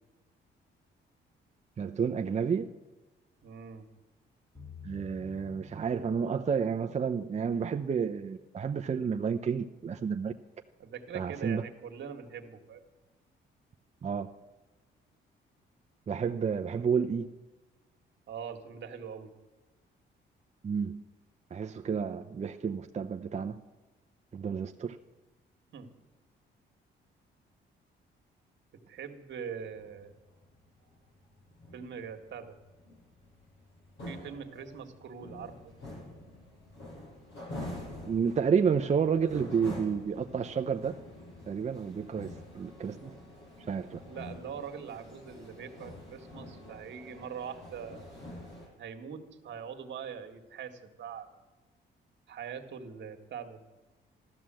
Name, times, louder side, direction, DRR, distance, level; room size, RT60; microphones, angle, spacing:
voice 1, 1.8-2.7 4.8-10.3 11.1-11.6 14.0-14.3 16.1-17.3 20.6-21.0 21.5-23.6 24.3-25.0 38.0-40.9 41.5-43.1 43.7-44.0, right 6 dB, 35° right, 5 dB, 0.7 m, -30 dB
voice 2, 3.4-3.9 10.8-12.8 18.3-19.3 25.7-25.9 28.9-30.2 31.7-32.6 34.0-35.8 42.1-42.3 44.1-48.2 48.8-51.4 52.3-53.6, right 7 dB, 65° right, 5 dB, 1.9 m, -42 dB
sound 1, 4.6-8.3, left 4 dB, 15° left, 3.1 m, -52 dB
sound 2, 29.6-48.7, left 1 dB, 65° left, 6.4 m, -47 dB
14.0 x 12.5 x 7.6 m, 1.1 s
cardioid pair, 90°, 20 cm